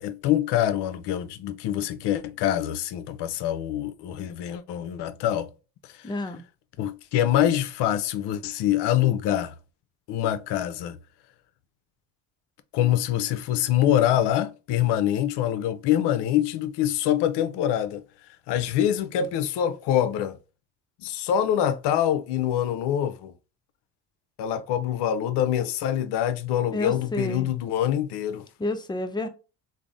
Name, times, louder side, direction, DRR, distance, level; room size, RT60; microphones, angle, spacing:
voice 1, 0.0-5.5 5.8-5.9 6.8-9.5 10.1-11.0 12.7-18.0 18.5-20.4 21.0-23.3 24.4-28.5, left 11 dB, 60° left, 0.6 m, -25 dB
voice 2, 6.0-6.4 26.7-27.5 28.6-29.3, left 2 dB, 10° left, 0.4 m, -29 dB
3.3 x 2.0 x 2.5 m
supercardioid pair, 75°, 47 cm